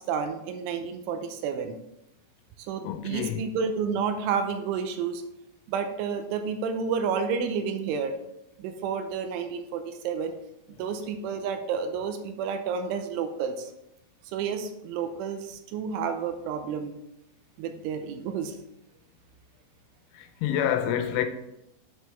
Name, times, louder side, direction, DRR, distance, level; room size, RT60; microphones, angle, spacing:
voice 1, 0.0-1.8 2.7-5.2 5.7-8.1 8.6-10.3 10.8-13.7 14.3-16.9 17.6-18.5, right 6 dB, 80° right, 3.0 m, -30 dB
voice 2, 2.8-3.4 20.1-21.3, left 10 dB, 80° left, 3.0 m, -27 dB
8.1 x 6.4 x 3.4 m
omnidirectional pair, 5.6 m